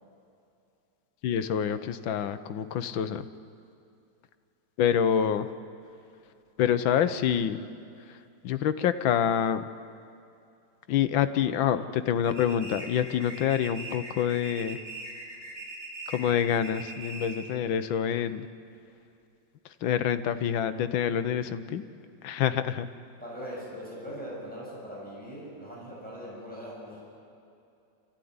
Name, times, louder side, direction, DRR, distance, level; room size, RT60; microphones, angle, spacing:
voice 1, 1.2-3.3 4.8-5.5 6.6-7.6 8.4-9.6 10.9-14.8 16.1-18.5 19.8-21.8 22.2-22.9, left 9 dB, 80° left, 11 dB, 1.6 m, -26 dB
sound 1, 12.2-17.5, right 2 dB, 80° right, 5.5 m, -41 dB
voice 2, 23.2-27.0, equal, 5° left, -5 dB, 7.0 m, -40 dB
27.5 x 15.0 x 9.6 m, 2.6 s
omnidirectional pair, 2.1 m